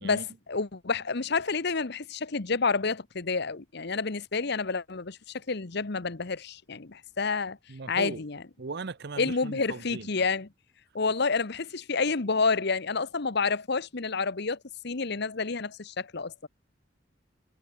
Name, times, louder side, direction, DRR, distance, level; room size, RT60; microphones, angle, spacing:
voice 1, 0.0-7.6 7.9-8.4 9.2-10.5 10.9-14.6 14.8-16.5, left 4 dB, 55° left, 1.1 m, -29 dB
voice 2, 7.7-8.2 8.6-10.2, right 4 dB, 55° right, 0.7 m, -38 dB
head